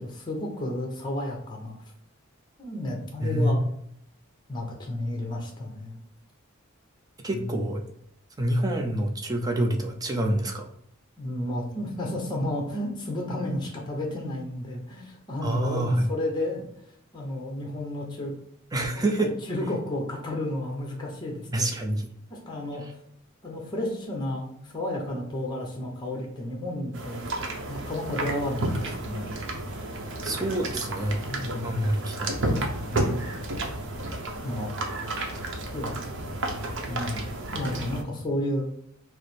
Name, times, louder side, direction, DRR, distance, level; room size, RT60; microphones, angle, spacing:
voice 1, 0.0-1.8 2.6-3.6 4.5-6.0 7.3-7.6 11.2-16.6 17.1-18.3 19.0-21.6 22.3-22.8 23.4-29.3 31.3-31.7 32.9-33.3 34.4-34.7 35.7-36.0 36.8-38.7, left 1 dB, 20° left, 1 dB, 0.8 m, -32 dB
voice 2, 3.2-3.5 7.2-7.8 8.4-10.7 15.4-16.1 18.7-19.3 21.5-22.1 22.8-22.9 30.2-31.2 31.6-32.4, right 1 dB, 20° right, 2 dB, 0.5 m, -27 dB
sound 1, 26.9-38.0, right 2 dB, 60° right, 0.7 m, -32 dB
4.8 x 2.0 x 4.2 m, 0.71 s
head